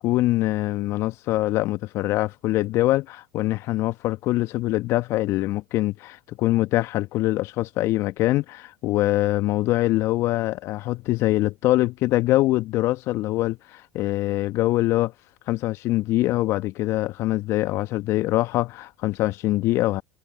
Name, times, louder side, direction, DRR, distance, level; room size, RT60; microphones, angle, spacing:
voice 1, 0.0-15.1 15.5-20.0, left 17 dB, 50° left, 1.4 m, -23 dB
hypercardioid pair, 80°, 6 cm